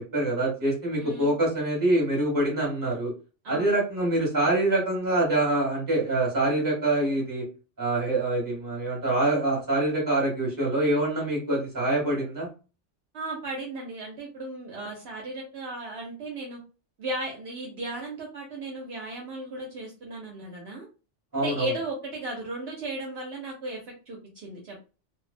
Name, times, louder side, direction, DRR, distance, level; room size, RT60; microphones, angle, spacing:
voice 1, 0.1-3.1 3.5-7.4 7.8-12.5 21.3-21.7, right 2 dB, 15° right, -3 dB, 1.1 m, -25 dB
voice 2, 1.0-1.4 3.4-3.7 13.1-16.6 17.0-20.9 21.3-24.8, right 2 dB, 65° right, -1 dB, 0.8 m, -35 dB
2.5 x 2.0 x 2.4 m, 0.34 s
omnidirectional pair, 1.3 m